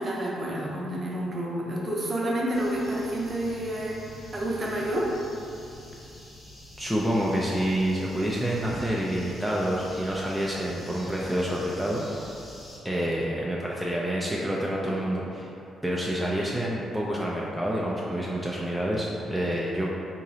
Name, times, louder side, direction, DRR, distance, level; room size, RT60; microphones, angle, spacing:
voice 1, 0.0-5.1, right 1 dB, 35° right, -3 dB, 0.7 m, -29 dB
sound 1, 2.5-12.8, equal, 40° left, 1.4 m, -46 dB
voice 2, 6.8-12.2 12.8-15.5 15.8-19.9, equal, ahead, -5 dB, 0.4 m, -28 dB
3.7 x 3.0 x 2.7 m, 2.7 s
cardioid pair, 90°, 0 cm